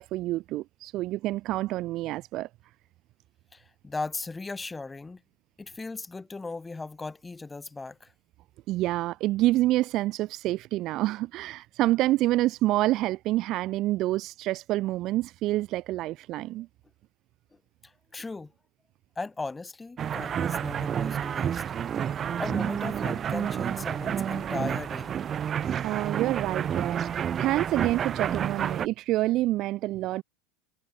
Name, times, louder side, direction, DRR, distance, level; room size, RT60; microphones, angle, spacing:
voice 1, 0.0-2.5 8.7-16.7 25.8-30.2, right 16 dB, 50° right, 1.4 m, -27 dB
voice 2, 3.5-5.2 5.6-8.1 17.8-18.5 19.2-21.7 22.4-25.1, left 3 dB, 10° left, 5.7 m, -37 dB
sound 1, 20.0-28.9, right 8 dB, 30° right, 0.6 m, -30 dB
supercardioid pair, 120°, 0 cm